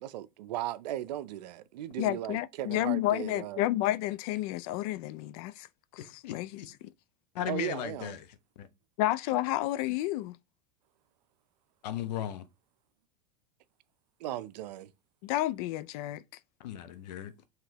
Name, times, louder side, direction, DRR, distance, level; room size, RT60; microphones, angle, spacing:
voice 1, 0.0-3.7 7.5-8.2 14.2-14.9, right 13 dB, 80° right, 0.5 m, -37 dB
voice 2, 2.0-5.7 5.9-6.5 6.8-6.9 9.0-10.4 15.2-16.2, left 15 dB, 60° left, 0.4 m, -31 dB
voice 3, 6.2-6.7 7.3-8.2 8.6-8.7 11.8-12.5 16.6-17.3, left 11 dB, 80° left, 0.8 m, -36 dB
5.8 x 3.1 x 2.9 m
supercardioid pair, 115°, 21 cm